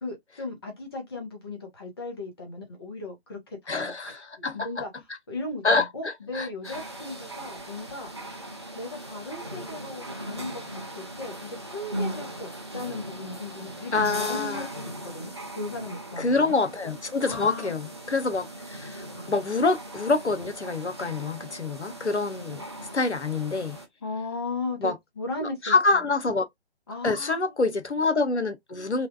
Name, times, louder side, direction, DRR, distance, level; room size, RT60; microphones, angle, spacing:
voice 1, 0.0-4.9 5.3-8.1 8.7-14.7 15.1-16.6 17.2-17.7 19.2-19.3 24.0-25.7 26.9-27.6, left 2 dB, 25° left, 0.7 m, -37 dB
voice 2, 3.7-4.7 5.6-6.8 13.9-14.7 16.2-22.6 22.9-23.8 24.8-25.0 25.4-26.5 27.0-29.1, left 3 dB, 85° left, 0.8 m, -26 dB
sound 1, 6.6-23.9, right 1 dB, 25° right, 0.4 m, -39 dB
3.2 x 2.3 x 2.3 m
figure-of-eight pair, 150°, 33 cm